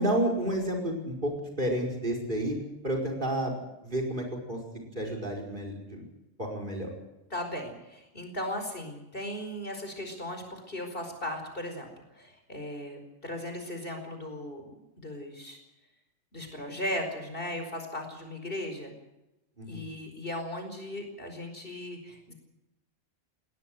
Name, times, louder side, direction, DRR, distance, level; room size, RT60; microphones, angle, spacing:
voice 1, 0.0-2.6 2.8-3.6 3.8-6.0 6.4-6.9 19.6-19.9, right 1 dB, 40° right, 3 dB, 5.3 m, -31 dB
voice 2, 7.3-11.9 12.1-14.7 15.0-15.6 16.3-18.9 19.6-22.3, left 1 dB, 45° left, 5 dB, 5.1 m, -37 dB
21.0 x 18.0 x 7.9 m, 0.94 s
omnidirectional pair, 1.3 m